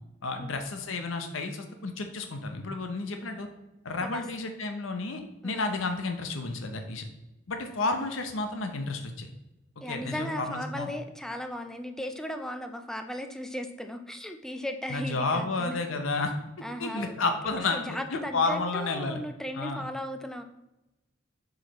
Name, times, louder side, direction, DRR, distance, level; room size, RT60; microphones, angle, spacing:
voice 1, 0.2-3.5 3.8-7.1 7.5-9.3 9.9-10.9 14.9-16.3 16.8-19.2 19.6-19.8, left 3 dB, 90° left, 6 dB, 0.8 m, -31 dB
voice 2, 5.4-5.8 7.7-8.1 9.8-15.8 16.6-17.3 17.7-20.4, equal, 5° left, 6 dB, 0.4 m, -37 dB
7.6 x 4.8 x 3.1 m, 0.98 s
head